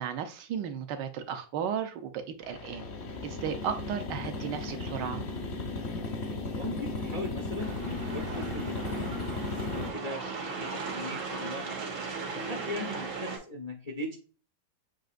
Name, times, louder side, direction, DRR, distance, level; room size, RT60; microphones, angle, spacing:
voice 1, 0.0-2.9 3.2-5.2, right 8 dB, 70° right, 1.2 m, -34 dB
sound 1, 2.4-9.9, left 3 dB, 55° left, 0.7 m, -35 dB
voice 2, 6.6-9.2 9.5-10.2 10.6-11.8 12.3-14.2, left 2 dB, 80° left, 0.3 m, -39 dB
sound 2, 7.6-13.4, right 4 dB, 90° right, 2.1 m, -37 dB
7.5 x 2.8 x 2.5 m
omnidirectional pair, 2.1 m